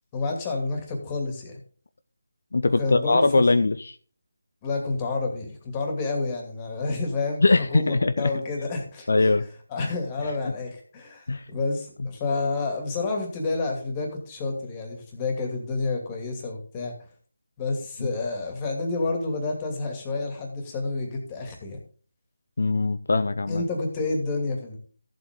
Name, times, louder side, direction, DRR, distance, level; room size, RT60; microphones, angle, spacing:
voice 1, 0.1-1.6 2.6-3.4 4.6-7.5 7.7-9.3 9.7-16.9 17.6-21.8 23.5-24.8, left 3 dB, 20° left, 2 dB, 2.5 m, -29 dB
voice 2, 2.5-4.0 7.4-8.3 9.1-9.4 9.8-9.9 11.3-11.5 18.0-18.1 22.6-23.6, left 3 dB, 65° left, 11 dB, 0.7 m, -21 dB
14.0 x 7.7 x 3.7 m, 0.43 s
figure-of-eight pair, 165°, 0 cm